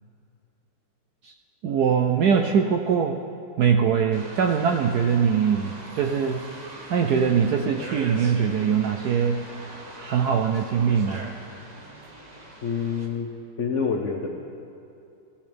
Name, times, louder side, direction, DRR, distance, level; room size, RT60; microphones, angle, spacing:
voice 1, 1.6-3.2 3.6-6.4 6.9-11.3, right 7 dB, 75° right, 4 dB, 0.9 m, -22 dB
sound 1, 4.1-13.1, right 1 dB, 30° right, 0.9 m, -41 dB
voice 2, 12.6-13.3 13.6-14.3, left 6 dB, 60° left, 2 dB, 0.7 m, -26 dB
18.0 x 13.0 x 3.4 m, 2.6 s
omnidirectional pair, 2.2 m